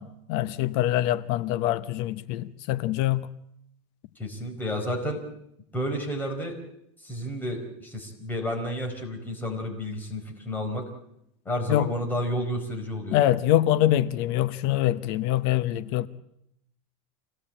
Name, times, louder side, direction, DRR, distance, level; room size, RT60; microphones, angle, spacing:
voice 1, 0.0-3.3 11.7-11.9 13.1-16.1, left 13 dB, 55° left, 0.9 m, -24 dB
voice 2, 4.2-5.2 5.7-6.6 7.0-10.9 11.4-13.2, equal, 10° left, 4.7 m, -31 dB
26.5 x 18.0 x 8.8 m
supercardioid pair, 150°, 17 cm